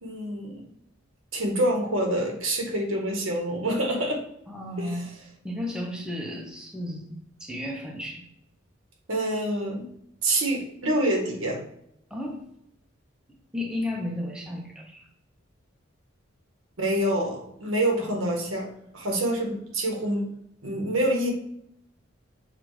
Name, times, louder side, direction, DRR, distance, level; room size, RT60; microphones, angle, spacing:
voice 1, 0.0-0.6 1.3-4.2 4.8-5.0 9.1-9.9 10.2-11.6 16.8-20.3 20.6-21.3, right 1 dB, 80° right, 2 dB, 1.1 m, -26 dB
voice 2, 4.5-5.1 5.4-8.2 12.1-12.4 13.5-15.0 18.0-18.1, left 1 dB, 5° right, -1 dB, 0.6 m, -33 dB
6.8 x 2.4 x 3.1 m, 0.75 s
head